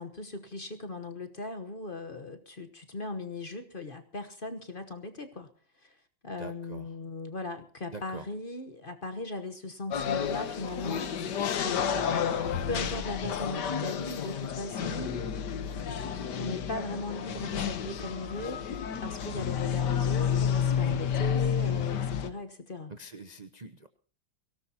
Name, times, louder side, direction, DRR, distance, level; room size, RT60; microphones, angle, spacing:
voice 1, 0.0-5.5 5.8-6.0 6.2-12.4 12.7-15.9 16.3-22.9, left 2 dB, 35° left, 7 dB, 1.1 m, -38 dB
voice 2, 6.4-7.0 7.9-8.3 22.9-23.9, right 3 dB, 40° right, 9 dB, 0.6 m, -44 dB
sound 1, 9.9-22.3, left 8 dB, 65° left, 1.7 m, -30 dB
23.5 x 17.0 x 2.9 m, 0.41 s
omnidirectional pair, 2.0 m